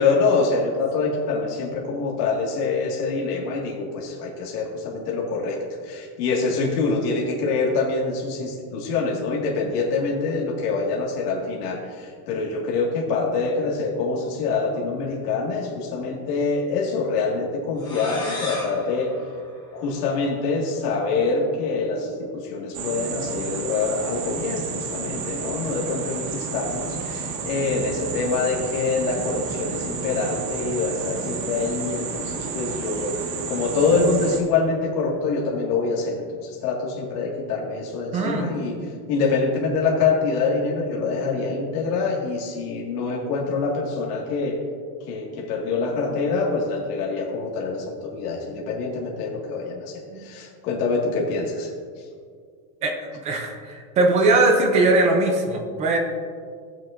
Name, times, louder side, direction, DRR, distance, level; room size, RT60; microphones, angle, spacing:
voice 1, 0.0-5.6 5.8-19.1 19.7-33.1 33.5-38.8 39.1-44.6 45.1-49.9 50.2-51.7, left 4 dB, 70° left, -2 dB, 1.9 m, -25 dB
sound 1, 17.8-20.4, left 1 dB, 10° left, 1.9 m, -36 dB
sound 2, 22.7-34.4, right 5 dB, 60° right, 1.6 m, -31 dB
voice 2, 38.1-38.5 50.1-50.2 52.8-53.0 53.2-56.0, right 2 dB, 15° right, 3 dB, 0.3 m, -20 dB
16.0 x 7.5 x 2.5 m, 2.1 s
supercardioid pair, 160°, 48 cm